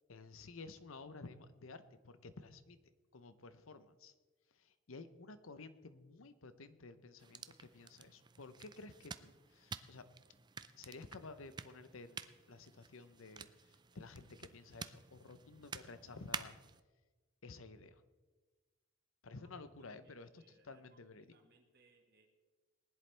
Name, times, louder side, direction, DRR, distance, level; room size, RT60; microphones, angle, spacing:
voice 1, 0.1-2.8 3.1-4.1 4.5-10.0 10.8-12.2 12.5-16.6 17.4-18.0 19.2-21.3, left 3 dB, 70° left, 12 dB, 0.8 m, -53 dB
sound 1, 7.2-16.8, right 5 dB, 20° right, 0.4 m, -50 dB
voice 2, 19.3-22.3, right 3 dB, 50° right, 2 dB, 1.9 m, -71 dB
20.0 x 10.5 x 3.4 m, 1.3 s
head